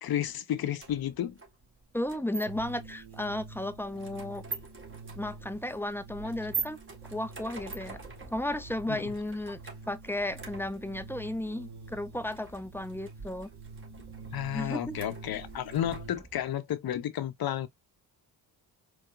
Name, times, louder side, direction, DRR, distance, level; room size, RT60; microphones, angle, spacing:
voice 1, 0.0-1.4 8.9-9.1 14.3-17.7, left 11 dB, 55° left, 0.7 m, -32 dB
sound 1, 0.8-16.5, right 5 dB, 30° right, 1.5 m, -44 dB
voice 2, 1.9-4.4 5.2-6.8 7.1-8.0 8.3-9.6 9.9-13.5 14.5-15.0, left 1 dB, 5° left, 0.4 m, -34 dB
sound 2, 2.5-16.1, right 4 dB, 45° right, 2.2 m, -47 dB
4.6 x 2.2 x 2.4 m
supercardioid pair, 60°, 43 cm